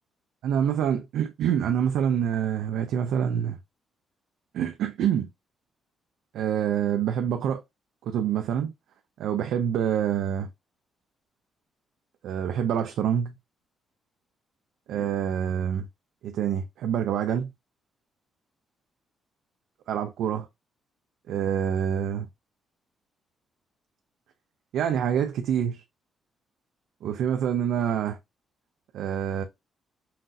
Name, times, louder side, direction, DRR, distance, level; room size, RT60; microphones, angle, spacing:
voice 1, 0.4-3.6 4.5-5.3 6.3-7.6 8.1-8.7 9.2-10.5 12.2-13.4 14.9-15.9 16.2-17.5 19.9-20.5 21.3-22.3 24.7-25.8 27.0-28.2 28.9-29.4, right 9 dB, 85° right, 0.4 m, -26 dB
5.8 x 2.6 x 2.5 m
cardioid pair, 155°, 0 cm